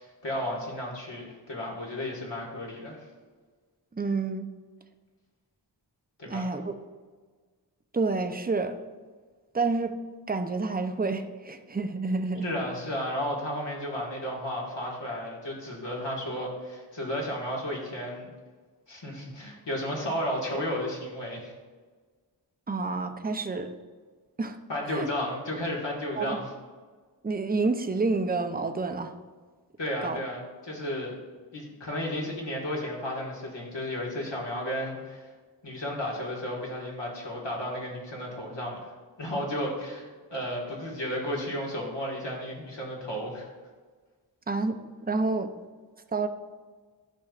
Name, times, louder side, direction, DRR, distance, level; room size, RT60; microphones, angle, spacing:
voice 1, 0.0-3.0 6.2-6.5 12.4-18.3 18.9-21.5 24.7-26.5 29.8-31.2 31.5-35.3 35.6-38.9 39.2-43.5, left 1 dB, 75° left, -3 dB, 1.9 m, -33 dB
voice 2, 3.9-4.5 6.3-6.7 7.9-8.8 9.5-9.9 10.3-12.5 22.7-23.7 24.4-24.6 24.9-25.1 26.2-26.4 27.2-29.1 30.0-30.2 44.5-44.8 45.0-45.5 46.1-46.3, right 3 dB, 20° right, 7 dB, 0.6 m, -28 dB
11.5 x 5.5 x 2.4 m, 1.4 s
wide cardioid pair, 45°, 43 cm